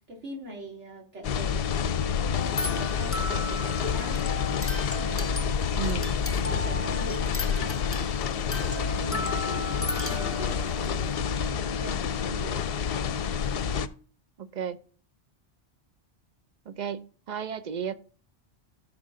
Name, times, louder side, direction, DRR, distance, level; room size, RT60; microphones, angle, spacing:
voice 1, 0.0-4.3 6.2-7.9 8.9-11.1 11.5-12.7, equal, 90° right, 2.7 m, -42 dB
sound 1, 1.2-13.9, left 7 dB, 60° left, 0.8 m, -28 dB
sound 2, 2.3-11.2, left 2 dB, 15° left, 0.5 m, -36 dB
voice 2, 5.7-6.1 14.4-14.8 16.7-17.9, right 8 dB, 45° right, 0.7 m, -33 dB
14.5 x 6.0 x 3.8 m
omnidirectional pair, 1.2 m